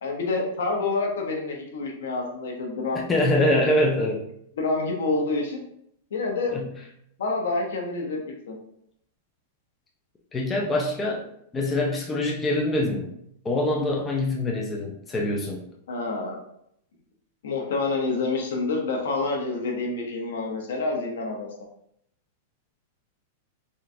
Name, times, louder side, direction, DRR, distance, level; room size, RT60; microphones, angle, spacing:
voice 1, 0.0-3.1 4.6-5.6 6.1-6.7 7.2-8.2 8.5-8.6 15.9-16.4 17.4-21.5, left 3 dB, 80° left, 1 dB, 0.8 m, -27 dB
voice 2, 3.1-4.2 6.5-6.6 10.3-13.1 13.4-15.6, left 1 dB, 10° left, -1 dB, 0.3 m, -24 dB
3.7 x 2.3 x 2.6 m, 0.71 s
supercardioid pair, 175°, 0 cm